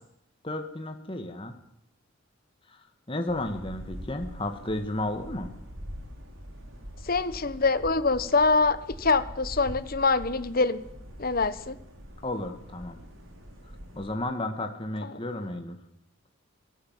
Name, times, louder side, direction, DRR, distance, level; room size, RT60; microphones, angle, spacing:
voice 1, 0.4-1.6 2.7-5.5 12.2-13.0 14.0-15.8, left 1 dB, 25° left, 5 dB, 2.0 m, -33 dB
sound 1, 3.3-14.2, equal, 70° right, 4.8 m, -43 dB
voice 2, 7.0-10.8 11.2-11.8 15.0-15.2, left 3 dB, 45° left, 13 dB, 1.3 m, -25 dB
23.5 x 19.0 x 7.6 m, 0.74 s
head